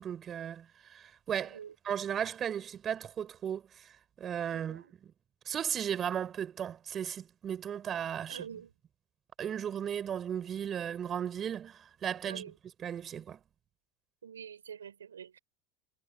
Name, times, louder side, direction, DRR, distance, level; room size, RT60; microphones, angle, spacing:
voice 1, 0.0-1.6 1.8-3.9 4.2-4.8 5.5-8.4 9.4-12.5 12.8-13.4, right 9 dB, 35° right, 5.1 m, -35 dB
voice 2, 1.4-1.7 4.5-4.9 8.3-8.7 12.2-12.5 14.2-15.4, right 8 dB, 80° right, 4.9 m, -46 dB
figure-of-eight pair, 80°, 0 cm